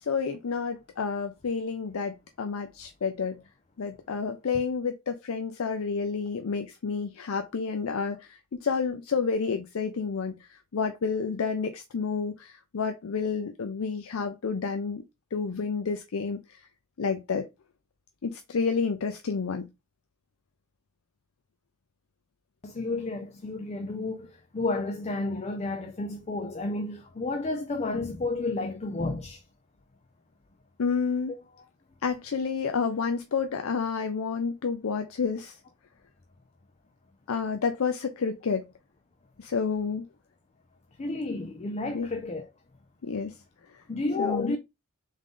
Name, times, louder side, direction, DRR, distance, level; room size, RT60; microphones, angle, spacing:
voice 1, 0.0-3.4 3.8-15.0 15.3-16.7 17.0-17.5 18.2-19.7 30.8-31.3 32.0-35.6 37.3-38.7 39.4-40.0 41.9-42.1 43.0-43.3 43.7-43.8 44.2-44.5, left 5 dB, 80° left, 0.5 m, -30 dB
voice 2, 22.6-29.4 41.0-42.5 43.9-44.6, left 2 dB, 30° left, 0.5 m, -31 dB
3.7 x 3.6 x 3.7 m
head